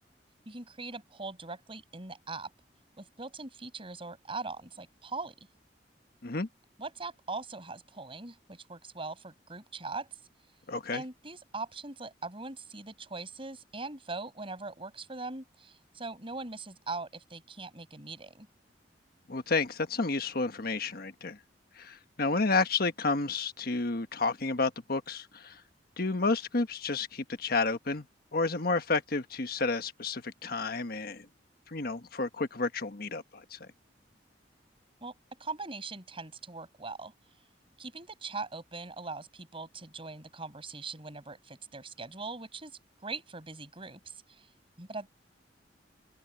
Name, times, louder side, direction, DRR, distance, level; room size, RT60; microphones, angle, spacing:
voice 1, 0.5-2.5 3.0-5.3 6.8-10.1 10.9-18.5 35.0-35.1 35.4-37.1 37.8-44.5 44.8-45.1, right 3 dB, 30° right, 6.2 m, -41 dB
voice 2, 10.7-11.0 19.3-21.4 21.8-25.6 26.0-28.0 28.3-31.3 31.7-33.2 33.5-33.7, left 3 dB, 55° left, 1.3 m, -31 dB
open air
head